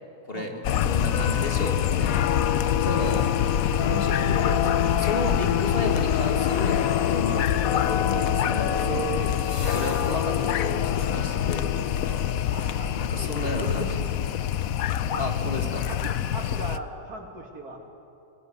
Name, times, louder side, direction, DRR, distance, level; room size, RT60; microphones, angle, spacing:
voice 1, 0.3-0.7 3.0-3.3 7.2-7.6 8.7-9.3 12.5-14.1 14.7-17.8, right 3 dB, 85° right, 2 dB, 3.2 m, -38 dB
sound 1, 0.6-16.8, left 9 dB, 70° left, 1.1 m, -25 dB
voice 2, 0.9-2.3 2.8-3.3 3.8-6.8 7.1-7.4 7.9-9.0 9.7-12.2 12.9-14.0 15.2-15.8, left 2 dB, 40° left, 3 dB, 2.5 m, -32 dB
sound 2, 9.2-11.0 13.2-13.3, right 3 dB, 25° right, 1.2 m, -46 dB
22.0 x 21.5 x 9.6 m, 2.6 s
omnidirectional pair, 1.6 m